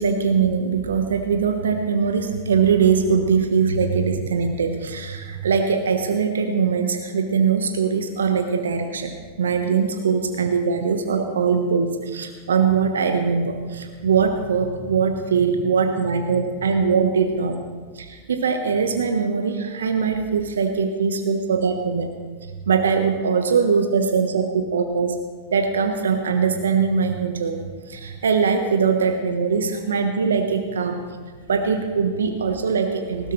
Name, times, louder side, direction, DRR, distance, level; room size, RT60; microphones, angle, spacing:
voice 1, 0.0-9.1 9.4-17.6 17.9-22.1 22.7-25.2 25.5-31.0 31.5-33.3, right 6 dB, 75° right, 5 dB, 1.2 m, -21 dB
19.0 x 16.5 x 3.2 m, 1.5 s
figure-of-eight pair, 95°, 0 cm